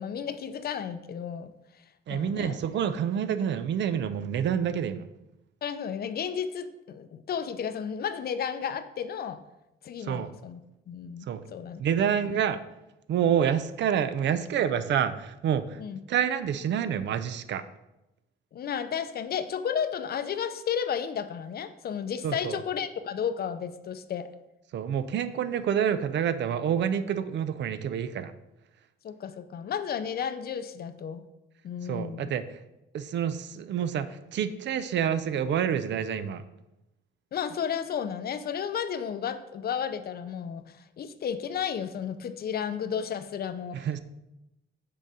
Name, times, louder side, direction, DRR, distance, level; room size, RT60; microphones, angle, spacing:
voice 1, 0.0-1.5 2.1-2.6 5.6-9.4 9.8-10.6 10.9-11.8 12.2-12.4 15.8-16.0 18.5-24.3 29.0-31.2 31.6-32.3 37.3-43.8, left 7 dB, 50° left, 11 dB, 0.5 m, -33 dB
voice 2, 2.1-5.1 10.0-10.3 11.3-11.4 11.8-12.6 13.1-15.8 16.1-17.6 22.2-22.6 24.7-28.3 31.8-32.6 32.9-36.4 43.7-44.0, right 8 dB, 65° right, 12 dB, 0.5 m, -28 dB
6.7 x 3.9 x 4.8 m, 0.92 s
cardioid pair, 90°, 20 cm